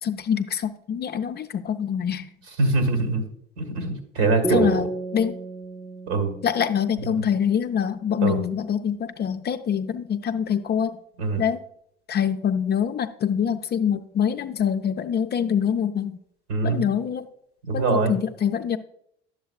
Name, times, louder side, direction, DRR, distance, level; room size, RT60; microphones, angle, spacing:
voice 1, 0.0-2.3 4.5-5.4 6.4-11.0 11.4-11.6 12.1-16.2 16.6-17.3 17.7-18.8, left 8 dB, 30° left, 8 dB, 0.5 m, -25 dB
voice 2, 2.6-3.2 3.6-4.8 6.1-6.3 8.2-8.4 11.2-11.4 16.5-16.8 17.6-18.1, right 3 dB, 70° right, 6 dB, 1.8 m, -23 dB
sound 1, 4.4-7.9, right 2 dB, 10° right, 0.6 m, -32 dB
11.0 x 7.4 x 2.4 m, 0.71 s
hypercardioid pair, 70°, 32 cm